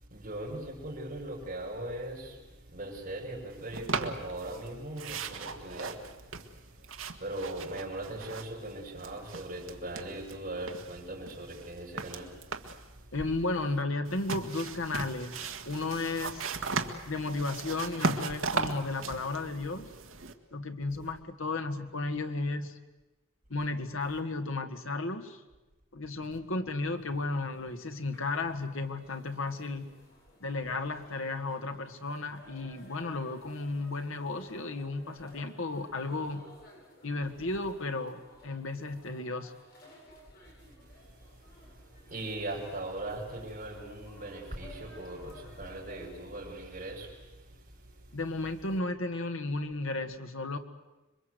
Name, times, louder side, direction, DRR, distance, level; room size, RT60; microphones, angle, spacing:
voice 1, 0.1-2.3 2.7-6.0 7.2-12.3 42.1-47.1, right 1 dB, 40° right, -1 dB, 6.5 m, -39 dB
sound 1, 3.7-4.7 5.0-8.7 9.0-10.4 10.7-12.9 14.0-20.3, right 4 dB, 75° right, 1.6 m, -37 dB
voice 2, 13.1-16.5 17.0-19.9 20.5-22.8 23.5-25.4 25.9-29.9 30.4-36.5 37.0-39.5 48.1-50.6, left 2 dB, 75° left, 7 dB, 1.8 m, -34 dB
sound 2, 26.8-46.3, left 1 dB, 50° left, 7.8 m, -57 dB
26.5 x 23.0 x 8.1 m, 1.1 s
head